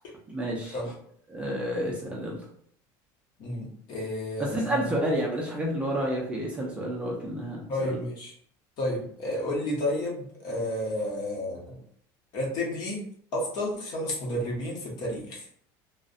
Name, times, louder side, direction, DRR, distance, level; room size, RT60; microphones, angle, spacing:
voice 1, 0.3-0.8 1.3-2.5 4.4-8.0, right 1 dB, 10° right, -3 dB, 0.4 m, -30 dB
voice 2, 3.4-4.9 7.7-8.3 8.8-11.8 12.3-13.1 13.3-15.5, left 1 dB, 45° left, -2 dB, 0.8 m, -31 dB
2.5 x 2.0 x 2.5 m, 0.63 s
cardioid pair, 170°, 10 cm